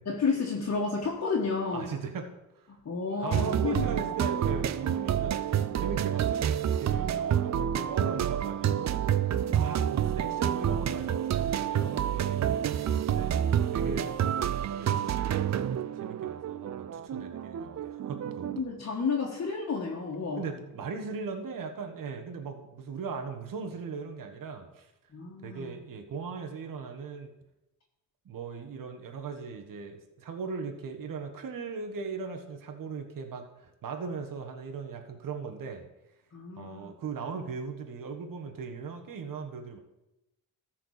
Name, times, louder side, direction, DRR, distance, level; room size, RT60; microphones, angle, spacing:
voice 1, 0.1-1.9 2.9-4.0 9.4-9.6 18.6-20.4 25.1-25.7 36.3-36.9, left 4 dB, 45° left, -3 dB, 1.8 m, -31 dB
voice 2, 1.7-2.7 3.2-9.0 9.5-13.3 13.7-15.2 15.5-15.7 15.9-18.5 20.4-24.9 25.4-27.3 28.2-35.9 36.6-39.8, right 5 dB, 65° right, 4 dB, 1.5 m, -39 dB
sound 1, 3.3-18.6, right 9 dB, 50° right, 0.6 m, -28 dB
13.5 x 4.6 x 6.7 m, 0.92 s
cardioid pair, 90°, 35 cm